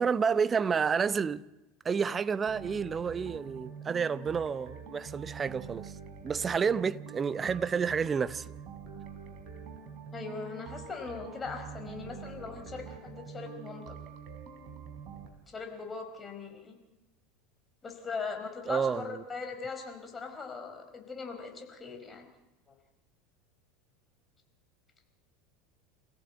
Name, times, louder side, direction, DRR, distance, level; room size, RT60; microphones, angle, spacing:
voice 1, 0.0-1.4 1.8-5.9 6.2-8.5 18.7-19.2, right 6 dB, 25° right, 0.8 m, -30 dB
sound 1, 2.5-15.3, right 6 dB, 45° right, 4.5 m, -45 dB
voice 2, 10.1-14.0 15.5-16.8 17.8-22.3 22.7-22.8, left 4 dB, 20° left, 4.5 m, -40 dB
27.5 x 16.0 x 8.0 m
figure-of-eight pair, 75°, 0 cm